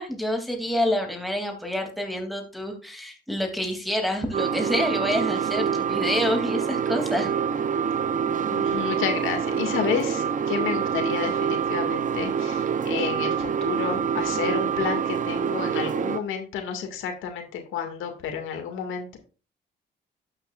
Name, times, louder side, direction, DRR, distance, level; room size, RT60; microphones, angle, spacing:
voice 1, 0.0-7.3, left 1 dB, ahead, 2 dB, 2.8 m, -27 dB
sound 1, 4.3-16.2, right 7 dB, 40° right, 0.7 m, -26 dB
voice 2, 8.4-19.2, left 8 dB, 90° left, 4 dB, 2.2 m, -31 dB
12.0 x 8.7 x 2.5 m, 0.35 s
cardioid pair, 90°, 20 cm